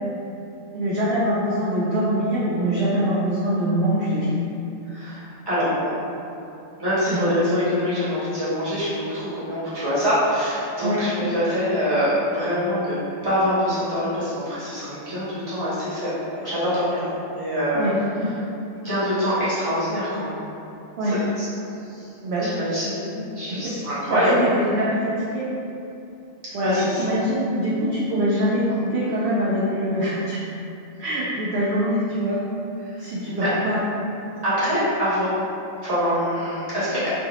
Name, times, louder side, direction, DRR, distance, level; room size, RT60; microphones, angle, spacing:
voice 1, 0.7-4.3 7.1-7.3 10.8-11.0 17.7-18.3 21.0-21.2 22.2-22.5 23.1-23.2 23.5-23.7 24.1-25.5 26.5-30.4 31.0-32.4 33.0-33.8, equal, 65° right, -8 dB, 0.7 m, -24 dB
voice 2, 4.9-5.9 6.8-13.0 13.2-17.0 17.3-17.9 18.3-18.4 18.8-20.3 21.0-21.5 21.9-22.1 22.4-23.1 23.3-24.4 26.5-27.2 32.9-33.0 33.4-33.5 34.4-35.3 35.8-37.1, equal, 20° right, -12 dB, 1.0 m, -24 dB
3.4 x 2.2 x 2.9 m, 2.8 s
omnidirectional pair, 1.4 m